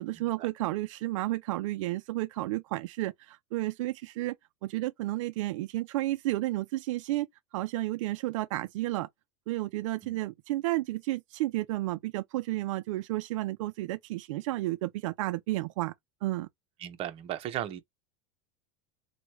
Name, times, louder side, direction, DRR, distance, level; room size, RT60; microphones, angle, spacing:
voice 1, 0.0-4.4 4.6-7.3 7.5-9.1 9.5-15.9 16.2-16.5, right 17 dB, 75° right, 0.4 m, -32 dB
voice 2, 16.8-17.8, right 12 dB, 35° right, 0.8 m, -36 dB
3.0 x 2.2 x 2.8 m
supercardioid pair, 140°, 16 cm